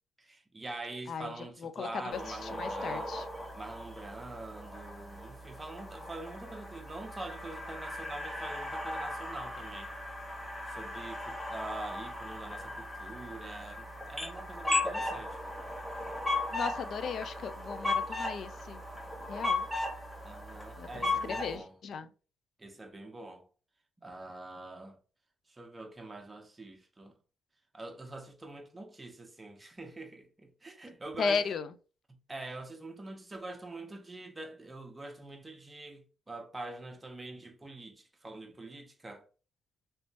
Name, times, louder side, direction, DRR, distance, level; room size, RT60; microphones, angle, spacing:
voice 1, 0.2-3.1 3.5-9.9 10.7-15.4 20.2-21.8 22.6-23.5 24.0-25.0 25.5-27.1 27.7-31.4 32.3-39.3, right 2 dB, 20° right, 0.8 m, -44 dB
voice 2, 1.6-3.2 16.5-18.8 19.3-19.7 20.8-22.1 31.2-31.7, left 6 dB, 60° left, 0.4 m, -36 dB
sound 1, 2.1-21.6, left 2 dB, 10° left, 1.0 m, -37 dB
3.1 x 3.0 x 2.9 m
cardioid pair, 90°, 0 cm